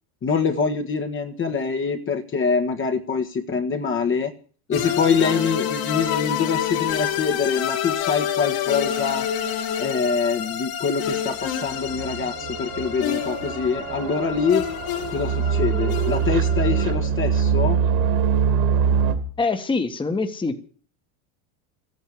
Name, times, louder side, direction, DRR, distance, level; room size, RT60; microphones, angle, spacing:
voice 1, 0.2-4.3 4.7-9.3 9.8-14.6 15.1-17.8, left 5 dB, 25° left, 5 dB, 1.6 m, -24 dB
sound 1, 4.7-16.9, left 9 dB, 50° left, 3.0 m, -28 dB
sound 2, 11.9-19.2, right 7 dB, 55° right, 2.9 m, -23 dB
voice 2, 19.4-20.6, left 3 dB, 10° left, 6 dB, 1.7 m, -24 dB
13.5 x 9.6 x 8.7 m, 0.43 s
supercardioid pair, 125°, 45 cm